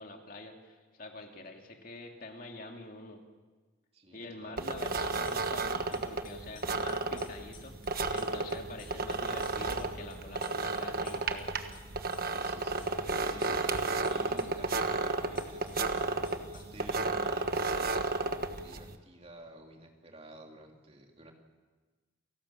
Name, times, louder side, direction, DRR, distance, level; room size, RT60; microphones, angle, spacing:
voice 1, 0.0-3.2 4.1-11.6, left 2 dB, 45° left, 3 dB, 2.5 m, -46 dB
voice 2, 3.9-4.8 12.3-21.3, right 1 dB, 30° right, 2 dB, 3.2 m, -51 dB
sound 1, 4.6-19.0, right 3 dB, 50° right, 1.3 m, -33 dB
sound 2, 4.7-5.6 5.9-11.4 11.7-13.1 13.4-17.1, left 8 dB, 85° left, 6.9 m, -56 dB
29.0 x 18.0 x 7.3 m, 1.3 s
head